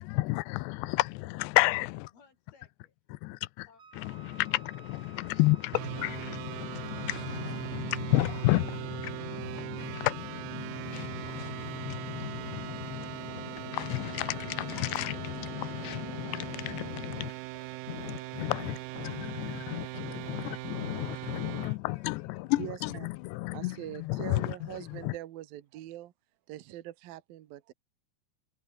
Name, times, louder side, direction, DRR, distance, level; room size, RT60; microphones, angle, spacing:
voice 1, 0.0-2.1 3.1-3.7 4.0-17.3 17.9-25.1, left 21 dB, 85° left, 2.8 m, -32 dB
voice 2, 1.7-2.9 3.7-3.8 16.1-16.7 17.1-19.7 20.5-22.5 22.8-23.0, left 5 dB, 60° left, 7.9 m, -62 dB
Wind instrument woodwind instrument, 3.8-8.0, right 5 dB, 35° right, 2.5 m, -54 dB
sound 1, 5.7-21.8, right 20 dB, 80° right, 2.3 m, -40 dB
voice 3, 22.6-23.1 23.5-26.1 26.5-27.7, right 14 dB, 65° right, 2.9 m, -42 dB
omnidirectional pair, 4.9 m